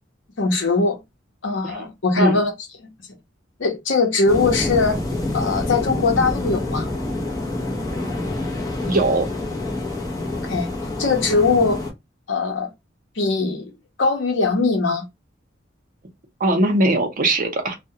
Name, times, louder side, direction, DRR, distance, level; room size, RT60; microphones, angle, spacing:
voice 1, 0.4-1.0 1.4-2.5 2.8-2.9 3.6-5.0 5.3-6.9 10.4-10.7 11.0-11.8 12.3-12.7 13.2-13.7 14.0-15.0, left 3 dB, 70° left, 0.7 m, -20 dB
sound 1, 4.3-11.9, left 2 dB, 20° left, 0.6 m, -27 dB
voice 2, 8.9-9.3 16.4-17.7, right 2 dB, 45° right, 0.6 m, -20 dB
2.2 x 2.1 x 2.7 m
head